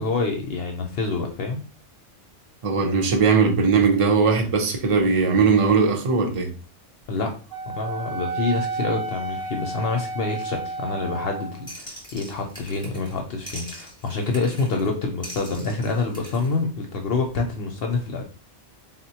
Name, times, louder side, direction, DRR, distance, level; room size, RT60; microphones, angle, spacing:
voice 1, 0.0-1.6 7.1-7.3 7.7-18.2, left 3 dB, 60° left, 0.7 m, -27 dB
voice 2, 2.6-6.5, right 5 dB, 40° right, 0.5 m, -19 dB
Wind instrument woodwind instrument, 7.5-11.7, right 3 dB, 85° right, 1.0 m, -31 dB
sound 1, 11.7-13.2 13.5-14.9 15.2-16.5, equal, 5° left, 0.8 m, -42 dB
3.7 x 2.1 x 2.8 m
omnidirectional pair, 1.3 m